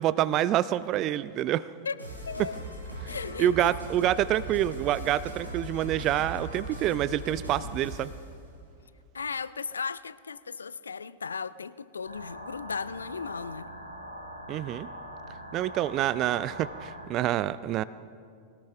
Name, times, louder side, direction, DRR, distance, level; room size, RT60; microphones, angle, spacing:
voice 1, 0.0-1.7 3.4-8.1 14.5-14.9 15.5-17.8, right 12 dB, 35° right, 0.4 m, -27 dB
voice 2, 1.9-2.6 3.0-3.7 9.1-13.7, left 5 dB, 75° left, 0.4 m, -36 dB
sound 1, 2.0-8.3, right 1 dB, 90° left, 3.7 m, -39 dB
sound 2, 12.0-17.0, equal, 90° right, 2.0 m, -43 dB
21.5 x 18.5 x 3.4 m
figure-of-eight pair, 90°, 0 cm